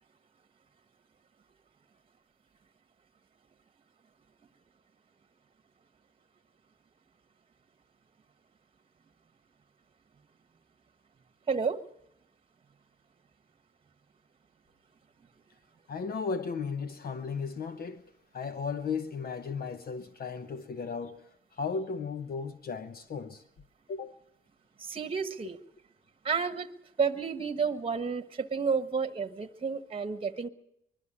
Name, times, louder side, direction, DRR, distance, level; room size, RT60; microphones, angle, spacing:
voice 1, 11.5-11.8 24.8-25.6 26.2-26.7 27.0-30.5, right 5 dB, 25° right, 1.3 m, -31 dB
voice 2, 15.9-18.0 18.3-21.2 21.5-23.4 23.9-24.2, left 5 dB, 50° left, 0.9 m, -35 dB
21.5 x 12.5 x 9.9 m
cardioid pair, 90°, 20 cm